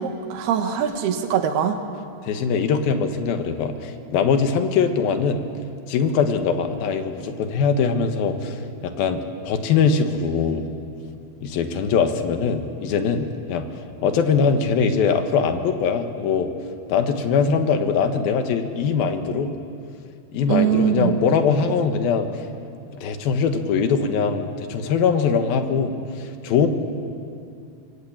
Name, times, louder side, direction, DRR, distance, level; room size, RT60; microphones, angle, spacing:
voice 1, 0.0-1.8 20.5-21.1, right 8 dB, 85° right, 6 dB, 3.5 m, -22 dB
voice 2, 2.2-5.5 5.9-10.7 11.4-13.7 14.0-16.5 16.9-19.6 20.3-22.3 22.9-26.7, left 5 dB, 75° left, 7 dB, 3.2 m, -22 dB
25.0 x 21.5 x 8.8 m, 2.5 s
omnidirectional pair, 4.4 m